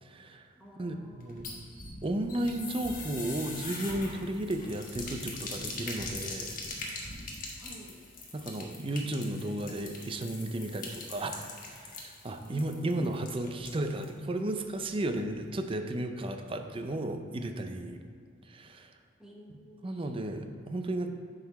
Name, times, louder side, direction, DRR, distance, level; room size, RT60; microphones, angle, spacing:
voice 1, 0.0-0.5 0.8-1.5 2.0-7.2 8.3-18.0 18.5-18.9 19.8-21.1, right 1 dB, 30° right, 6 dB, 0.5 m, -34 dB
voice 2, 0.5-1.6 7.6-8.0 12.4-13.3 19.2-20.3, equal, 5° right, -4 dB, 1.1 m, -50 dB
sound 1, 1.2-14.2 14.5-14.6 14.8-14.9, left 3 dB, 45° left, 1.2 m, -42 dB
sound 2, 1.4-7.6, equal, 45° right, 1.4 m, -47 dB
10.0 x 4.0 x 4.1 m, 2.2 s
head